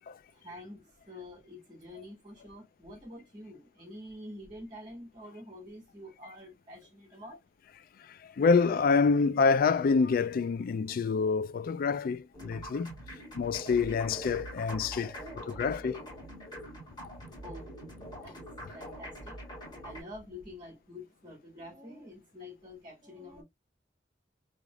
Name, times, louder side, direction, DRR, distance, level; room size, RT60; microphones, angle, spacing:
voice 1, 0.3-7.4 15.0-15.8 17.4-17.7 18.2-19.4 19.8-23.4, left 1 dB, 25° right, 1.8 m, -47 dB
voice 2, 8.0-12.9 13.3-15.2 15.5-16.0, left 5 dB, 55° left, 0.3 m, -27 dB
sound 1, 12.3-20.0, equal, 25° left, 2.9 m, -44 dB
3.9 x 3.4 x 2.3 m
head